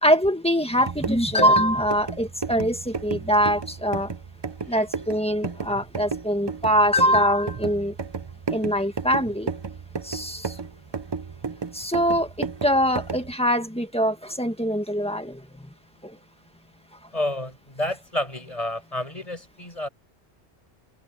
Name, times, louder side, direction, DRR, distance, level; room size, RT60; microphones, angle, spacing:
voice 1, 0.0-4.1 4.7-7.9 8.5-9.5 10.0-10.5 11.7-15.5 16.0-16.2, equal, 5° left, 1.7 m, -23 dB
sound 1, 0.7-13.3, right 5 dB, 30° right, 0.5 m, -33 dB
voice 2, 17.1-19.9, left 1 dB, 30° left, 6.1 m, -30 dB
omnidirectional pair, 1.2 m